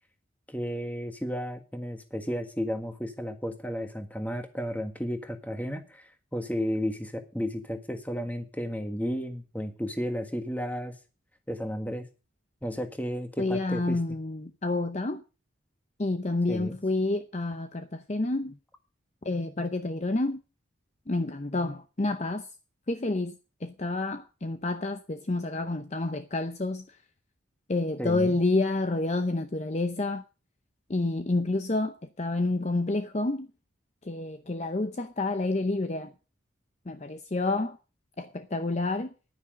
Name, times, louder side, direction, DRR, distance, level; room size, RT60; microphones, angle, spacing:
voice 1, 0.5-10.9 11.5-12.1 12.6-14.0 16.5-16.8 28.0-28.3, equal, 10° left, 1.6 m, -33 dB
voice 2, 13.4-15.2 16.0-18.6 19.2-20.4 21.1-22.5 22.9-27.0 27.7-30.2 30.9-33.5 34.0-36.1 36.9-37.8 38.2-39.1, left 2 dB, 35° left, 0.7 m, -29 dB
10.0 x 9.7 x 6.2 m
head